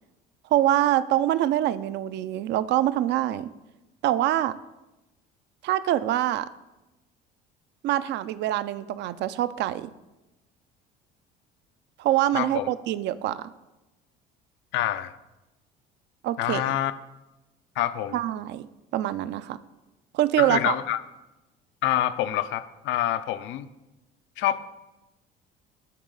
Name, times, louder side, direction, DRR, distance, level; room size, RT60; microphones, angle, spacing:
voice 1, 0.5-3.5 4.0-4.6 5.6-6.5 7.8-9.9 12.0-13.5 16.2-16.6 18.1-18.7 18.9-19.6 20.1-20.8, right 13 dB, 55° right, 15 dB, 0.4 m, -25 dB
voice 2, 12.3-12.7 14.7-15.2 16.4-16.9 17.8-18.2 20.4-21.0 21.8-23.7 24.4-24.7, left 12 dB, 65° left, 13 dB, 0.5 m, -26 dB
10.0 x 4.0 x 3.9 m, 0.99 s
supercardioid pair, 85°, 21 cm